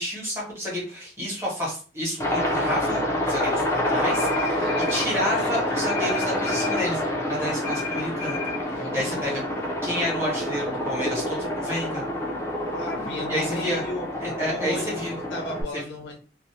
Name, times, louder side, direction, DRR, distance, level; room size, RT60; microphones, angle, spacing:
voice 1, 0.0-7.0 7.3-9.4 9.8-12.0 13.3-13.8 14.2-15.2 15.7-15.8, equal, 15° right, -5 dB, 1.0 m, -30 dB
Aircraft, 2.2-15.6, left 1 dB, 15° left, 0.4 m, -27 dB
sound 1, 4.1-5.1 5.9-6.9 7.6-8.6, left 6 dB, 85° right, 1.1 m, -34 dB
voice 2, 4.5-6.0 8.8-9.2 12.7-14.1 14.5-14.9 15.3-16.2, left 1 dB, 80° left, 1 dB, 0.5 m, -36 dB
2.6 x 2.1 x 2.7 m, 0.39 s
head